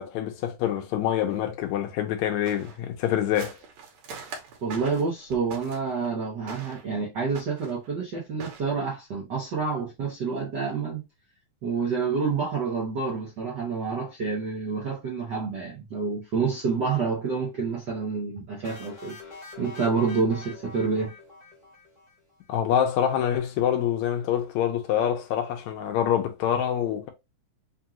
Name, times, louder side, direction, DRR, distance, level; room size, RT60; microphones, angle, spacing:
voice 1, 0.0-3.6 22.5-27.1, left 10 dB, 75° left, 2.0 m, -26 dB
sound 1, 1.3-1.4 1.9-2.0 2.5-6.1 6.5-6.9 7.3-7.9 8.4-8.6, right 5 dB, 70° right, 2.2 m, -43 dB
voice 2, 4.6-11.0 11.6-19.2 19.6-21.1, right 5 dB, 90° right, 0.9 m, -28 dB
sound 2, 18.6-22.4, left 3 dB, 30° left, 0.8 m, -45 dB
5.3 x 2.4 x 2.9 m
omnidirectional pair, 3.4 m